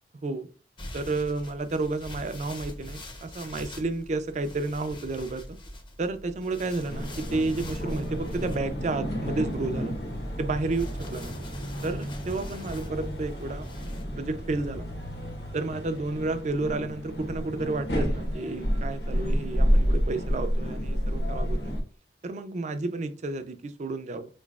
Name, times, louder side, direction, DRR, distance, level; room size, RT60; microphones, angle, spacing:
sound 1, 0.8-14.0, left 1 dB, 25° left, 0.5 m, -44 dB
voice 1, 0.9-5.6 6.0-9.9 10.4-11.4 11.8-13.7 14.1-14.9 15.5-21.7 22.2-24.3, right 3 dB, 40° right, 0.4 m, -31 dB
sound 2, 6.9-21.8, equal, 70° left, 0.9 m, -30 dB
3.9 x 3.1 x 2.3 m
head